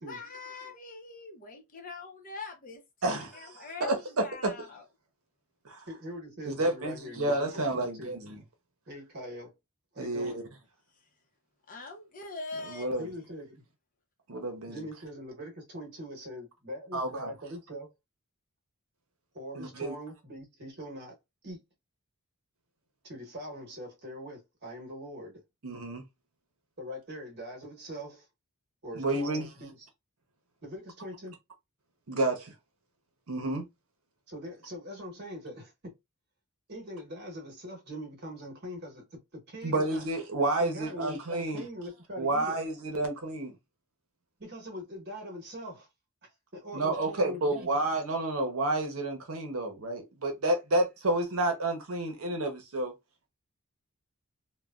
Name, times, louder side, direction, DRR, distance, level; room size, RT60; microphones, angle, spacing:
voice 1, 0.0-2.8 3.6-4.8 11.7-13.0, left 3 dB, 40° left, 0.7 m, -43 dB
voice 2, 3.0-4.5 5.6-5.8 6.4-8.4 10.0-10.4 12.6-13.1 14.3-14.9 16.9-17.3 19.5-19.9 25.6-26.0 29.0-29.5 32.1-32.5 33.3-33.6 39.6-41.6 42.2-43.5 46.7-52.9, right 2 dB, 70° right, 0.7 m, -30 dB
voice 3, 5.9-8.1 8.9-9.5 9.9-10.4 13.0-13.6 14.7-17.9 19.3-21.1 21.4-21.6 23.0-25.4 26.8-28.2 28.8-29.9 30.6-31.4 34.3-35.9 36.7-40.0 40.6-42.6 44.4-45.9 46.5-47.7, equal, 50° right, 1.1 m, -42 dB
3.1 x 2.1 x 2.3 m
head